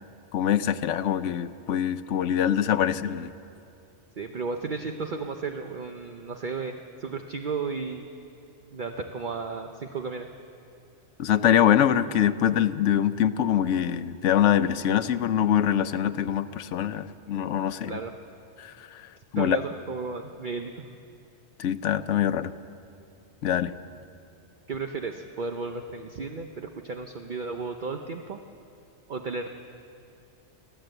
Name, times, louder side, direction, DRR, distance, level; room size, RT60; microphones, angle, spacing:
voice 1, 0.3-3.3 11.2-18.0 18.6-19.0 19.3-19.6 21.6-22.5 23.4-23.7, left 10 dB, 85° left, 12 dB, 1.0 m, -24 dB
voice 2, 4.2-8.0 8.7-10.3 17.9-18.1 19.4-20.9 24.7-28.4 29.1-29.5, right 4 dB, 45° right, 5 dB, 0.9 m, -34 dB
28.5 x 11.5 x 7.8 m, 2.6 s
omnidirectional pair, 1.2 m